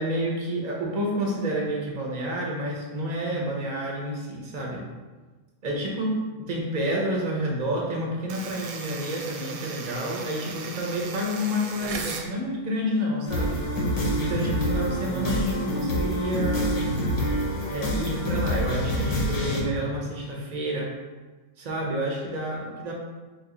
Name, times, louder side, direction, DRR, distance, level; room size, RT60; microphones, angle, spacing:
voice 1, 0.0-4.8 5.6-6.2 6.5-13.6 14.2-16.8 17.7-20.9 21.6-22.9, equal, 40° right, -2 dB, 0.6 m, -29 dB
sound 1, 8.3-12.3, right 5 dB, 75° right, 1.0 m, -37 dB
sound 2, 13.3-19.6, equal, 90° left, 1.3 m, -26 dB
3.3 x 2.9 x 3.8 m, 1.3 s
omnidirectional pair, 1.6 m